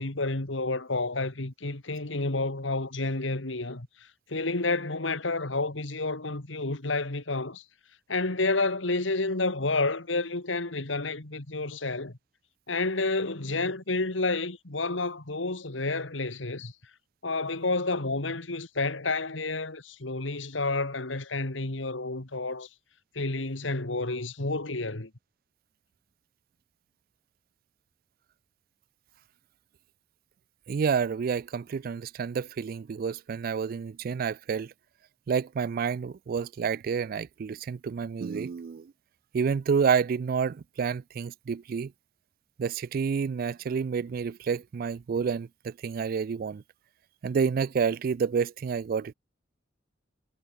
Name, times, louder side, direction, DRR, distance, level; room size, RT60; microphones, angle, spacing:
voice 1, 0.0-3.9 4.3-7.6 8.1-12.1 12.7-16.7 17.2-22.7 23.1-25.1, left 3 dB, 85° left, 2.2 m, -30 dB
voice 2, 30.7-34.7 35.3-38.9 39.3-41.9 42.6-46.6 47.2-49.1, right 6 dB, 50° right, 0.3 m, -29 dB
head